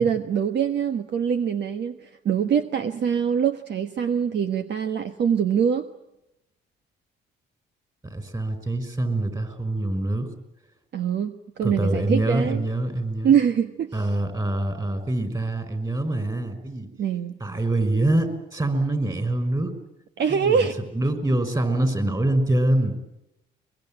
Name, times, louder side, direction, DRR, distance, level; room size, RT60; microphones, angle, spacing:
voice 1, 0.0-5.9 10.9-12.6 13.2-14.0 17.0-17.4 20.2-20.8, right 7 dB, 60° right, 7 dB, 1.3 m, -24 dB
voice 2, 8.0-10.3 11.6-13.3 13.9-16.9 17.4-19.7 20.3-20.7 20.9-23.1, right 1 dB, 20° right, 9 dB, 5.7 m, -25 dB
23.0 x 23.0 x 9.0 m, 0.88 s
cardioid pair, 90°, 20 cm